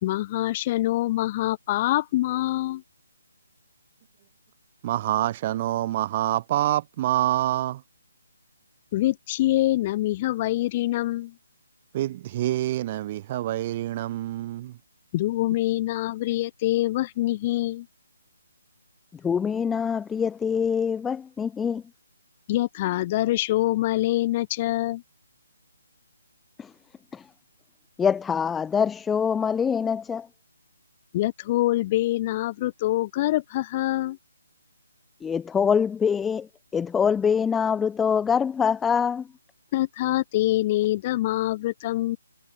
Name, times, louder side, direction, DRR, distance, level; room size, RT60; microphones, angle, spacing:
voice 1, 0.0-2.8 8.9-11.3 15.1-17.9 22.5-25.0 31.1-34.2 39.7-42.2, left 16 dB, 25° left, 2.0 m, -25 dB
voice 2, 4.8-7.8 11.9-14.7, right 14 dB, 25° right, 1.0 m, -26 dB
voice 3, 19.2-21.8 26.6-26.7 27.1-27.3 28.0-30.3 35.2-39.3, left 7 dB, 5° left, 1.0 m, -24 dB
figure-of-eight pair, 145°, 0 cm